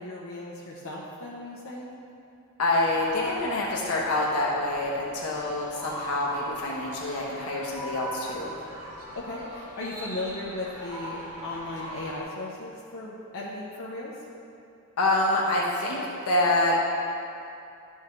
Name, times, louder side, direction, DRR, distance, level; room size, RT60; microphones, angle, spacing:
voice 1, 0.0-1.9 9.1-14.1, left 2 dB, 60° left, -5 dB, 0.8 m, -36 dB
voice 2, 2.6-8.5 15.0-16.0 16.3-16.8, left 2 dB, 80° left, -4 dB, 1.1 m, -26 dB
sound 1, 2.8-12.2, equal, 75° right, 1.6 m, -40 dB
11.5 x 5.4 x 3.2 m, 2.6 s
head